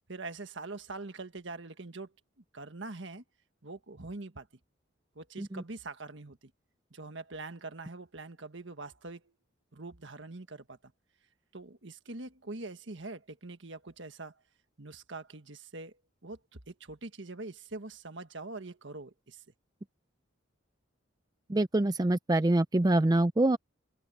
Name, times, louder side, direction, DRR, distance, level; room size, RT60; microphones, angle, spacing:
voice 1, 0.1-2.1 2.5-3.2 3.6-4.5 5.1-6.5 6.9-9.2 9.7-10.8 11.5-14.3 14.8-15.9 16.2-16.4 16.7-19.4, right 3 dB, 65° right, 1.6 m, -43 dB
voice 2, 21.5-23.6, right 1 dB, 20° right, 0.4 m, -25 dB
head